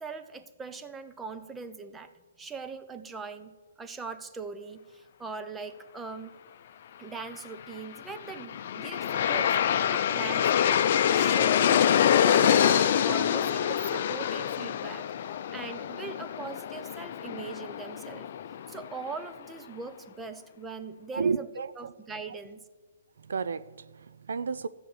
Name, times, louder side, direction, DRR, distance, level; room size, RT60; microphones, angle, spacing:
voice 1, 0.0-2.1 2.4-6.4 7.0-15.1 15.5-18.3 18.7-21.5 21.8-22.6, right 4 dB, 10° right, 9 dB, 0.9 m, -41 dB
Aircraft, 8.1-19.1, left 9 dB, 50° left, 0.6 m, -26 dB
voice 2, 21.1-21.9 23.2-24.7, right 5 dB, 70° right, 14 dB, 0.6 m, -32 dB
13.5 x 8.1 x 8.0 m, 1.3 s
hypercardioid pair, 135°, 0 cm